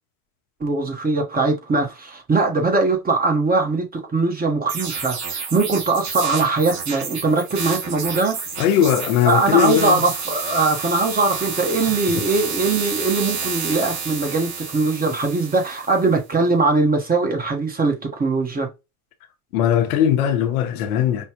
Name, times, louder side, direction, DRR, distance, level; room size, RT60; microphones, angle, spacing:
voice 1, 0.6-8.4 9.2-18.7, right 3 dB, 20° right, 1.2 m, -21 dB
sound 1, 4.7-16.1, right 5 dB, 75° right, 2.0 m, -30 dB
voice 2, 8.6-10.0 19.5-21.2, left 9 dB, 85° left, 1.1 m, -19 dB
5.5 x 2.3 x 3.0 m
supercardioid pair, 90°, 43 cm